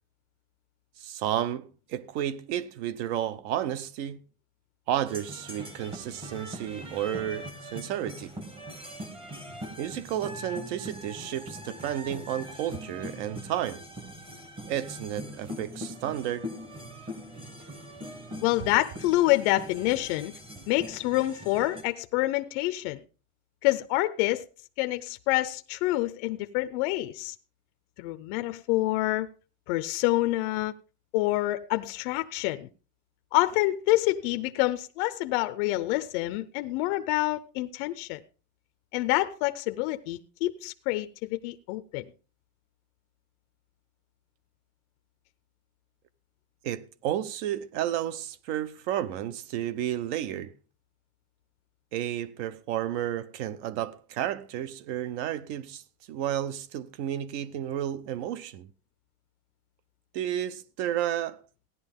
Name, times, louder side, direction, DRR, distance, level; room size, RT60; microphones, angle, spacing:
voice 1, 1.0-4.2 4.9-8.3 9.8-13.8 14.7-16.5 46.6-50.5 51.9-55.8 56.1-58.7 60.1-61.4, right 11 dB, 50° right, 0.7 m, -32 dB
sound 1, 5.1-21.9, equal, 10° right, 1.0 m, -42 dB
voice 2, 18.4-20.3 20.7-23.0 23.6-24.4 24.8-27.3 28.0-29.3 29.7-30.7 31.1-32.7 33.3-38.2 38.9-42.1, left 18 dB, 45° left, 0.6 m, -27 dB
15.5 x 10.5 x 3.6 m
supercardioid pair, 175°, 46 cm